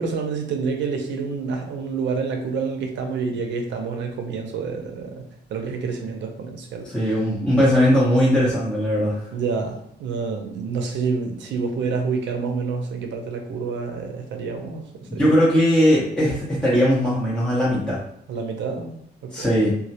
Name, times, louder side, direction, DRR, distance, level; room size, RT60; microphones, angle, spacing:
voice 1, 0.0-5.2 5.5-6.9 9.3-14.8 15.1-15.2 18.3-19.5, right 5 dB, 90° right, 3 dB, 0.5 m, -28 dB
voice 2, 6.9-9.2 15.1-18.0 19.3-19.8, equal, 5° left, -10 dB, 0.6 m, -19 dB
2.2 x 2.1 x 2.7 m, 0.68 s
cardioid pair, 135°, 18 cm